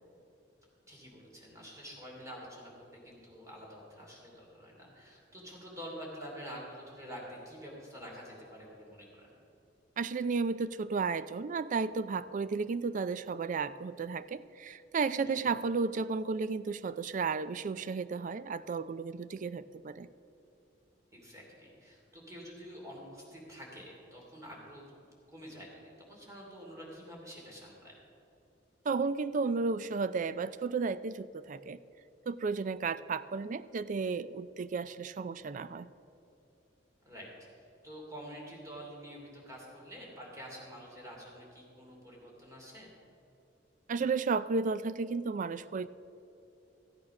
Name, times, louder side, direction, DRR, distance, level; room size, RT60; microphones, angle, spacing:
voice 1, 0.9-9.3 15.2-15.5 21.1-27.9 37.0-37.3 37.8-42.9, equal, 20° right, -2 dB, 2.9 m, -48 dB
voice 2, 10.0-20.1 28.9-31.8 32.3-35.9 43.9-45.9, right 4 dB, 45° right, 15 dB, 0.4 m, -33 dB
13.5 x 8.7 x 5.9 m, 2.7 s
head